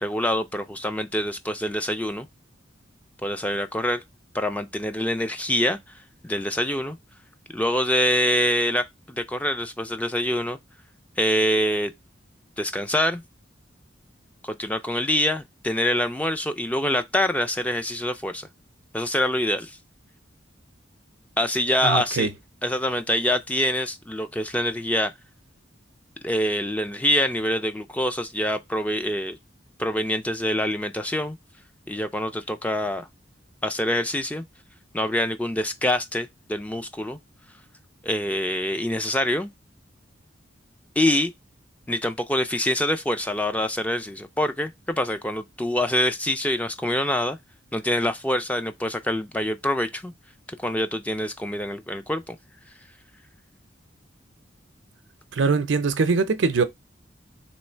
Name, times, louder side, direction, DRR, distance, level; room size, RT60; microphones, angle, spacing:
voice 1, 0.0-2.3 3.2-4.0 4.3-5.8 6.2-7.0 7.5-10.6 11.2-11.9 12.6-13.2 14.4-18.5 18.9-19.8 21.4-22.3 22.6-25.1 26.2-29.4 29.8-31.4 31.9-33.1 33.6-34.4 34.9-37.2 38.0-39.5 41.0-41.3 41.9-47.4 47.7-50.1 50.6-52.4, left 1 dB, 10° left, 0.4 m, -25 dB
voice 2, 21.8-22.3 55.3-56.6, right 4 dB, 75° right, 0.6 m, -22 dB
3.2 x 3.1 x 4.4 m
head